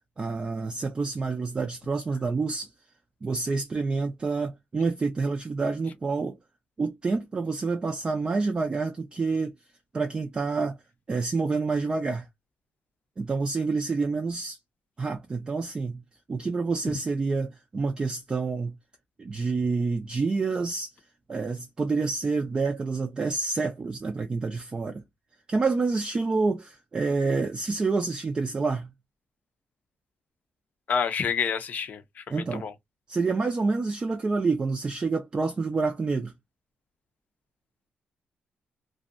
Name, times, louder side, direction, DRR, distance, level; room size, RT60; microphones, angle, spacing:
voice 1, 0.2-2.7 3.2-6.4 6.8-9.5 9.9-10.8 11.1-12.3 13.2-14.6 15.0-16.0 16.3-18.7 19.2-20.9 21.3-25.0 25.5-28.9 32.3-32.7 33.1-36.3, right 4 dB, 25° right, 0.4 m, -28 dB
voice 2, 30.9-32.7, left 6 dB, 50° left, 0.5 m, -29 dB
2.6 x 2.1 x 2.4 m
cardioid pair, 115°, 3 cm